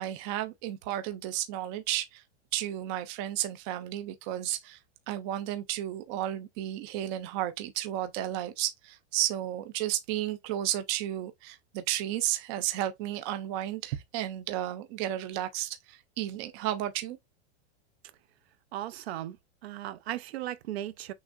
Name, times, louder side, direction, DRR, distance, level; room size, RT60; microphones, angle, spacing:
voice 1, 0.0-2.2 2.5-4.8 5.1-17.2, right 13 dB, 25° right, 0.3 m, -33 dB
voice 2, 18.7-19.4 19.6-21.1, right 13 dB, 70° right, 0.7 m, -36 dB
6.2 x 3.1 x 2.5 m
supercardioid pair, 160°, 33 cm